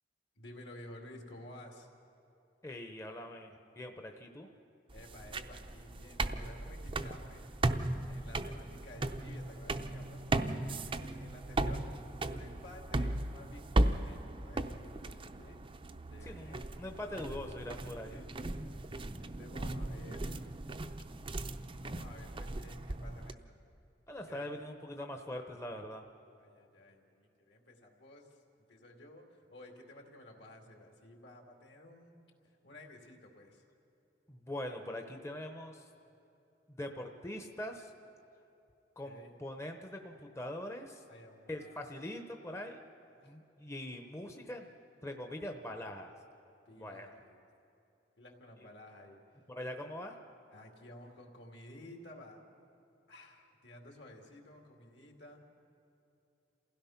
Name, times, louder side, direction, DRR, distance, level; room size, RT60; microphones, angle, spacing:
voice 1, 0.4-1.9 4.9-7.7 8.1-11.8 12.1-15.6 16.1-17.0 17.8-20.6 21.8-23.6 24.2-24.5 26.4-28.4 28.7-32.2 32.6-33.6 39.0-39.3 41.1-41.9 43.1-43.3 46.7-47.4 48.2-49.4 50.5-52.5 53.1-55.4, left 1 dB, 70° left, 2 dB, 2.5 m, -53 dB
voice 2, 2.6-4.5 16.2-18.2 24.1-26.0 34.3-35.8 36.7-37.9 39.0-41.0 41.5-42.8 43.2-44.7 45.0-46.1 46.7-47.1 49.5-50.2, left 1 dB, 15° left, 4 dB, 0.9 m, -42 dB
sound 1, 4.9-23.3, right 2 dB, 30° right, 0.6 m, -37 dB
28.0 x 16.5 x 5.8 m, 2.9 s
head